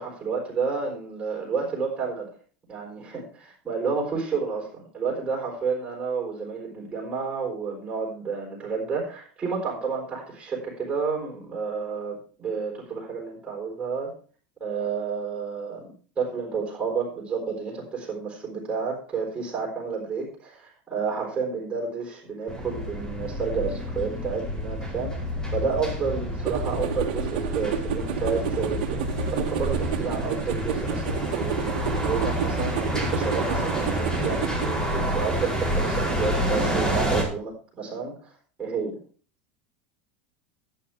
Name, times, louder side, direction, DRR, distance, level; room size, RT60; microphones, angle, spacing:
voice 1, 0.0-2.3 2.7-14.1 14.6-31.6 32.0-38.3 38.6-39.0, right 5 dB, 20° right, -3 dB, 4.6 m, -30 dB
sound 1, 22.5-37.2, equal, 15° left, 4.7 m, -28 dB
sound 2, 26.5-34.7, right 10 dB, 75° right, 1.5 m, -31 dB
11.0 x 10.0 x 4.6 m, 0.42 s
supercardioid pair, 130°, 5 cm